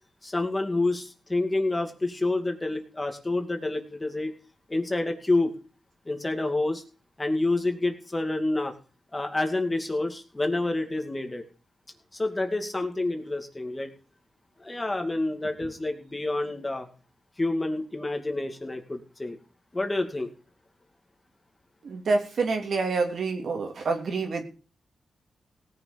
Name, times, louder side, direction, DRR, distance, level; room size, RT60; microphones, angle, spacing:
voice 1, 0.2-4.3 4.7-5.6 6.1-6.8 7.2-8.7 9.1-11.4 12.1-13.9 14.6-16.9 17.4-19.4 19.7-20.3, left 2 dB, 20° left, 5 dB, 2.4 m, -28 dB
voice 2, 21.8-24.4, right 3 dB, 70° right, 4 dB, 3.0 m, -27 dB
17.5 x 6.7 x 7.0 m, 0.36 s
cardioid pair, 85°, 0 cm